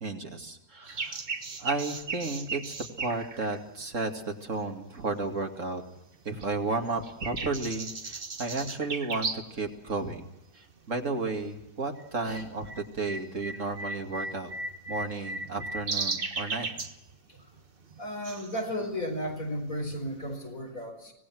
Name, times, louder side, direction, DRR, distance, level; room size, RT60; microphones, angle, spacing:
voice 1, 0.0-1.2 1.6-5.8 6.2-10.3 10.5-14.5 14.9-16.7, right 3 dB, 65° right, 3 dB, 2.7 m, -33 dB
sound 1, 0.9-4.8 5.3-6.2 6.4-9.6 9.9-10.0 10.7-11.0 11.3-20.3, right 3 dB, 40° right, 1.5 m, -37 dB
voice 2, 18.0-21.1, equal, 75° left, 3 dB, 5.2 m, -34 dB
25.0 x 19.0 x 6.2 m, 0.85 s
omnidirectional pair, 1.5 m